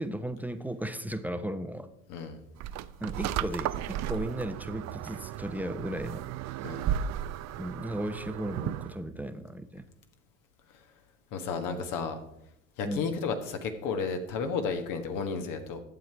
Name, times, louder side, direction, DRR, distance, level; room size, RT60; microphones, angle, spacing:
voice 1, 0.0-1.9 3.0-6.3 7.6-9.9 12.8-13.1, right 1 dB, 5° right, 9 dB, 0.8 m, -35 dB
voice 2, 2.1-2.4 6.6-6.9 11.3-12.2 12.8-15.8, left 5 dB, 60° left, 7 dB, 1.5 m, -32 dB
sound 1, 2.6-9.0, right 10 dB, 50° right, 0.6 m, -34 dB
11.0 x 7.5 x 4.6 m, 0.80 s
hypercardioid pair, 70°, 35 cm